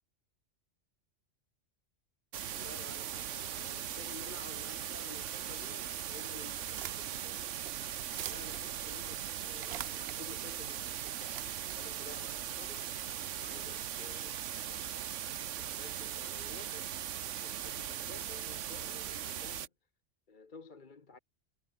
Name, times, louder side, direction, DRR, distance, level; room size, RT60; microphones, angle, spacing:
sound 1, 2.3-19.7, right 10 dB, 80° right, 1.2 m, -39 dB
voice 1, 2.5-7.6 8.1-11.4 11.7-12.9 13.4-14.3 15.5-16.9 17.4-19.7 20.3-21.2, left 4 dB, 40° left, 1.5 m, -52 dB
sound 2, 6.5-13.0, right 11 dB, 60° right, 0.8 m, -47 dB
omnidirectional pair, 1.3 m